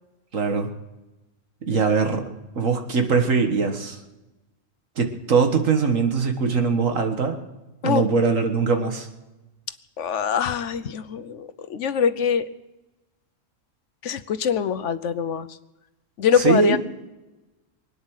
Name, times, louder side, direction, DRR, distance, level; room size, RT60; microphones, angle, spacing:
voice 1, 0.3-0.7 1.7-2.2 2.6-4.0 5.0-7.4 7.8-9.1 16.4-16.8, right 4 dB, 90° right, 5 dB, 2.0 m, -21 dB
voice 2, 10.0-12.5 14.0-15.5 16.2-16.8, left 7 dB, 70° left, 12 dB, 1.1 m, -24 dB
24.0 x 9.4 x 6.4 m, 1.1 s
omnidirectional pair, 1.3 m